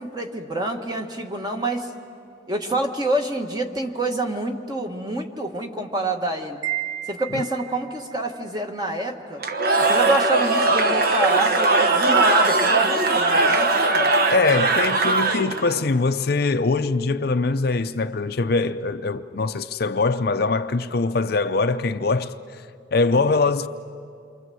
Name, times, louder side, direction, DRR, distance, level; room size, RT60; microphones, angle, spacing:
voice 1, 0.0-1.9 2.5-6.6 7.1-9.4 9.8-14.1 23.3-23.4, right 1 dB, 20° right, 1.5 m, -27 dB
Wind chime, 6.6-8.0, right 13 dB, 85° right, 1.6 m, -31 dB
Cheering / Crowd, 9.4-15.8, right 2 dB, 50° right, 1.2 m, -20 dB
voice 2, 14.3-22.6 22.9-23.7, left 3 dB, 50° left, 0.6 m, -22 dB
28.0 x 24.0 x 7.7 m
head